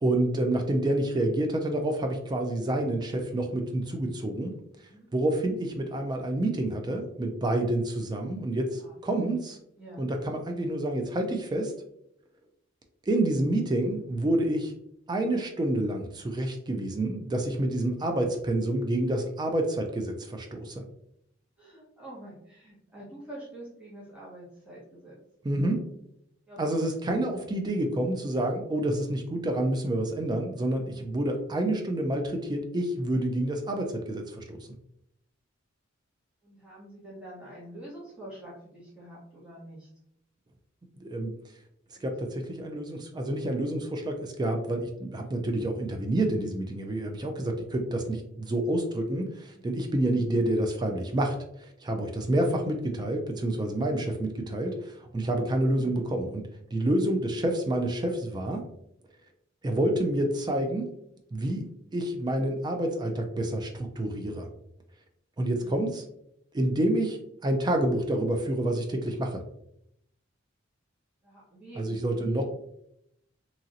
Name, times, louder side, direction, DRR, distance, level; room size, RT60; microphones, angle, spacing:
voice 1, 0.0-4.5 4.8-9.6 10.0-11.7 13.1-14.7 15.1-20.8 25.4-25.8 26.6-34.7 41.0-41.3 42.0-58.6 59.6-60.9 61.3-61.6 61.9-64.5 65.4-66.0 66.5-69.4 71.8-72.4, right 1 dB, 20° right, 3 dB, 0.3 m, -28 dB
voice 2, 4.7-5.1 8.8-8.9 9.8-10.0 21.6-25.2 26.5-26.9 30.8-31.1 36.4-39.9 41.9-42.3 49.5-49.8 55.1-55.4 65.4-65.7 71.2-71.8 72.1-72.4, right 1 dB, 5° right, -9 dB, 0.9 m, -47 dB
2.9 x 2.7 x 2.5 m, 0.76 s
head